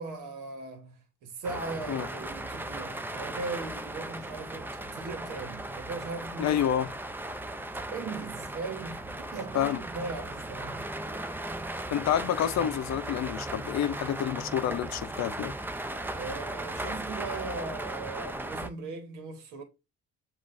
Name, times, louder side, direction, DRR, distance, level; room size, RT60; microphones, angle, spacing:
voice 1, 0.0-6.9 7.9-10.8 16.1-19.6, right 3 dB, 90° right, 1.2 m, -39 dB
sound 1, 1.4-18.7, right 1 dB, 5° right, 0.4 m, -37 dB
voice 2, 6.4-6.9 9.5-9.8 11.9-15.5, left 10 dB, 60° left, 0.6 m, -28 dB
7.3 x 2.5 x 2.5 m
cardioid pair, 90°, 30 cm